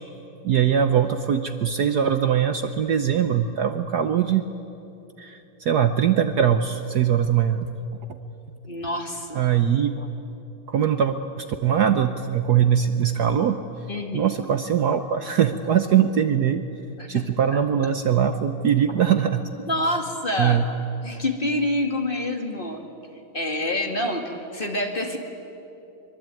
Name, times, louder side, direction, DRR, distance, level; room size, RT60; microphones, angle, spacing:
voice 1, 0.4-4.5 5.2-7.6 9.3-9.9 10.7-13.6 14.1-16.6 17.1-19.4 20.4-20.7, right 9 dB, 60° right, 9 dB, 1.2 m, -21 dB
voice 2, 8.6-9.4 10.0-10.1 13.9-14.3 17.0-17.3 19.7-20.6 21.0-22.8 23.3-25.2, left 1 dB, 25° left, 3 dB, 2.2 m, -27 dB
24.5 x 23.0 x 9.1 m, 2.9 s
omnidirectional pair, 2.2 m